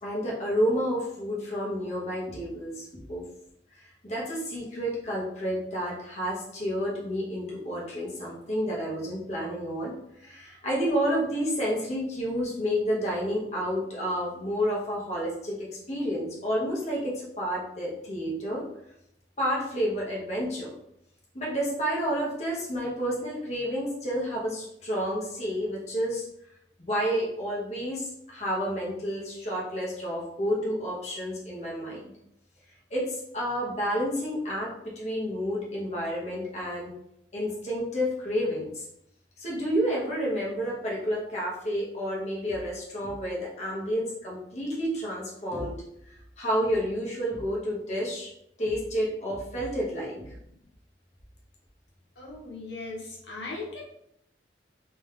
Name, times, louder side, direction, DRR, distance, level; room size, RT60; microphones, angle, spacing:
voice 1, 0.0-3.2 3.8-18.7 19.4-20.7 21.3-26.2 26.8-32.1 32.9-36.9 37.3-38.9 39.4-45.8 46.1-48.3 48.6-50.3, equal, 40° left, -5 dB, 1.1 m, -30 dB
voice 2, 52.2-53.8, left 3 dB, 80° left, -3 dB, 0.9 m, -38 dB
3.4 x 3.2 x 3.2 m, 0.78 s
head